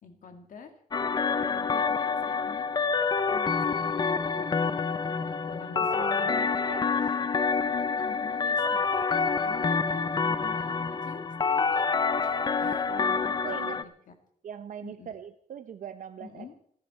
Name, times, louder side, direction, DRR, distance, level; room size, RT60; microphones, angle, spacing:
voice 1, 0.0-0.7 1.5-2.7 3.3-4.9 5.3-6.5 7.3-7.4 7.7-8.9 9.4-12.8 13.3-13.9 14.8-15.1 16.2-16.5, left 6 dB, 65° left, 5 dB, 2.6 m, -47 dB
sound 1, 0.9-13.8, left 5 dB, 30° left, 0.6 m, -27 dB
voice 2, 5.7-6.4 6.7-6.9 12.6-13.8 14.4-16.5, right 8 dB, 60° right, 9 dB, 0.8 m, -41 dB
29.0 x 10.5 x 4.5 m, 0.63 s
wide cardioid pair, 170°, 15 cm